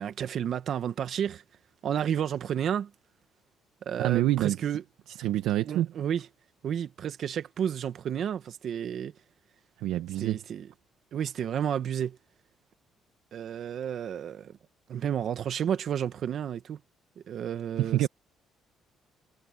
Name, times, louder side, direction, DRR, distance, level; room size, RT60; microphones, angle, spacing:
voice 1, 0.0-1.4 1.8-2.9 3.8-4.8 5.6-6.3 6.6-9.1 10.2-10.7 11.1-12.2 13.3-14.5 14.9-16.8 17.3-18.1, right 9 dB, 55° right, 1.4 m, -31 dB
voice 2, 4.0-4.6 5.1-5.9 9.8-10.4 17.8-18.1, right 14 dB, 90° right, 1.1 m, -26 dB
cardioid pair, 125°, 0 cm